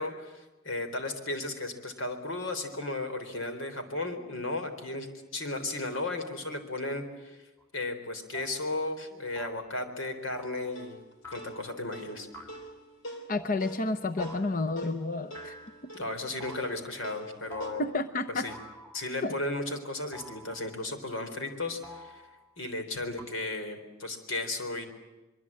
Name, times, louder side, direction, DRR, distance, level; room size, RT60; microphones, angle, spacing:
voice 1, 0.0-7.4 7.7-11.0 11.3-12.3 15.9-17.8 18.4-18.5 18.9-22.2 22.6-24.9, left 2 dB, 90° left, 7 dB, 3.8 m, -35 dB
sound 1, 7.6-7.7 8.3-8.6 9.3-9.7 10.3-10.7 11.2-11.7 12.3-12.7 13.3-13.6 14.2-14.7 15.3-16.0 16.4-16.9 17.5-18.0 18.5-19.2 20.1-20.8 21.8-22.5 23.2-23.3, right 1 dB, 15° left, 2.4 m, -48 dB
sound 2, 10.8-17.7, right 1 dB, 75° left, 3.9 m, -44 dB
voice 2, 13.3-15.5 17.8-18.5 19.2-19.4, left 2 dB, 45° left, 10 dB, 0.8 m, -30 dB
24.5 x 23.0 x 8.7 m, 1.1 s
head